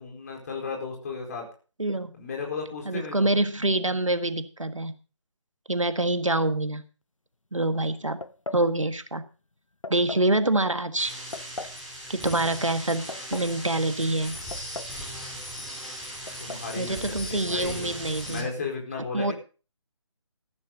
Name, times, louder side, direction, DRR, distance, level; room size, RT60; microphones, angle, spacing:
voice 1, 0.0-1.4 2.2-3.3 16.4-17.9 18.2-19.3, left 4 dB, 30° left, 0 dB, 4.4 m, -34 dB
voice 2, 1.8-2.1 2.8-4.9 5.7-6.8 7.5-8.2 8.5-9.2 9.9-11.1 12.1-14.4 16.8-18.5 19.1-19.3, right 2 dB, 80° right, 10 dB, 1.6 m, -26 dB
sound 1, 8.2-8.7 9.8-10.3 11.3-11.8 12.8-13.6 14.5-15.0 15.3-15.4 16.3-16.7, left 2 dB, 90° left, 0.7 m, -38 dB
sound 2, 11.0-18.4, equal, ahead, 3.7 m, -38 dB
14.0 x 13.0 x 3.9 m, 0.36 s
figure-of-eight pair, 150°, 16 cm